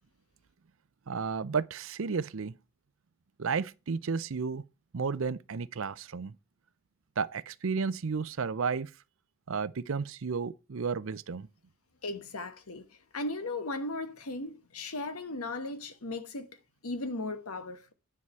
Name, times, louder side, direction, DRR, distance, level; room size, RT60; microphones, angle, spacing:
voice 1, 1.1-2.5 3.4-4.6 4.9-6.3 7.2-8.9 9.5-11.5, right 5 dB, 65° right, 0.5 m, -32 dB
voice 2, 12.0-12.9 13.1-16.5 16.8-17.9, left 2 dB, 85° left, 1.2 m, -36 dB
9.9 x 4.8 x 5.6 m
head